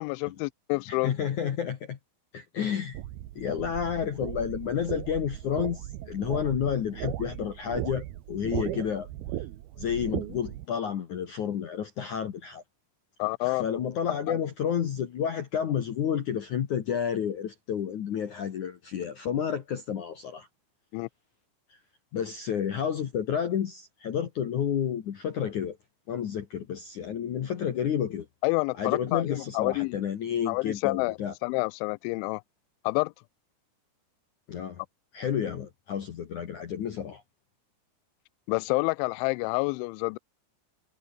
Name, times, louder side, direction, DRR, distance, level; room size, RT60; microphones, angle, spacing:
voice 1, 0.0-1.1 13.2-13.6 14.3-14.4 20.9-21.1 28.4-30.0 30.5-32.4 32.8-33.1 38.5-40.2, left 28 dB, 85° left, 2.7 m, -28 dB
voice 2, 0.9-2.0 2.3-3.0 3.4-9.1 9.8-12.6 13.4-20.5 21.7-21.8 22.1-25.8 26.1-28.3 28.8-31.3 34.5-34.8 35.1-37.2, left 8 dB, 60° left, 2.1 m, -30 dB
sound 1, 2.9-10.6, right 14 dB, 70° right, 2.5 m, -37 dB
omnidirectional pair, 5.8 m